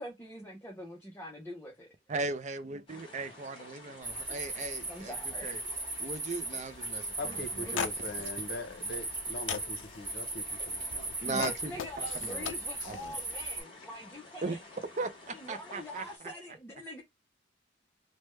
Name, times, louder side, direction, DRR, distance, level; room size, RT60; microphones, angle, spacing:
voice 1, 0.0-1.9 4.9-5.5 7.2-7.4 7.7-7.9 11.2-14.6 15.4-17.0, equal, 10° left, 0.6 m, -44 dB
voice 2, 2.1-5.1 5.4-5.6 6.0-7.9 11.2-12.5 12.9-13.2 14.4-14.6 15.0-16.3, right 3 dB, 40° right, 0.4 m, -38 dB
sound 1, 2.9-16.2, left 2 dB, 30° left, 1.0 m, -52 dB
sound 2, 4.0-13.6, right 2 dB, 20° right, 1.1 m, -38 dB
voice 3, 7.2-11.1, left 1 dB, 55° left, 0.7 m, -42 dB
sound 3, 7.8-8.3 8.9-9.2 9.5-10.0 10.9-13.2, left 8 dB, 80° left, 0.3 m, -38 dB
3.2 x 2.1 x 3.1 m
head